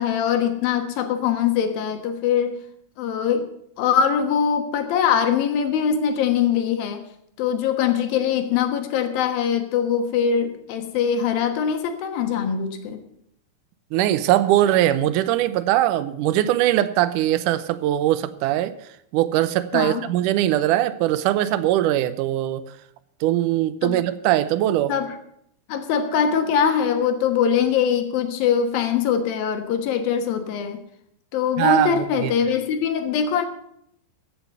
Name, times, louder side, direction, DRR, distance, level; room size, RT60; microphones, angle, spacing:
voice 1, 0.0-2.6 3.0-3.5 3.8-7.0 7.4-13.0 19.7-20.0 23.8-24.0 24.9-25.1 25.7-30.8 31.3-33.5, left 7 dB, 75° left, 7 dB, 3.0 m, -22 dB
voice 2, 13.9-18.7 19.1-22.6 23.2-24.9 31.6-32.3, right 13 dB, 80° right, 13 dB, 1.9 m, -21 dB
15.0 x 8.0 x 6.8 m, 0.73 s
omnidirectional pair, 4.3 m